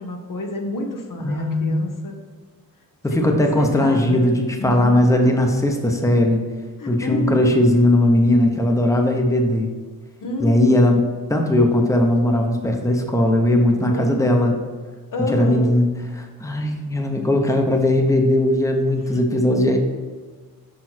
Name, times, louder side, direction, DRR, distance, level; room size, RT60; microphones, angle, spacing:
voice 1, 0.0-2.2 3.1-4.3 4.6-5.1 6.8-7.5 10.2-10.8 13.9-14.5 15.1-15.7, left 1 dB, 60° left, 3 dB, 1.1 m, -28 dB
voice 2, 1.2-1.9 3.0-6.4 6.9-9.7 10.4-11.0 11.3-14.6 15.2-15.9 16.2-19.8, left 1 dB, 10° left, 3 dB, 0.9 m, -18 dB
6.5 x 5.5 x 4.4 m, 1.5 s
cardioid pair, 80°, 35 cm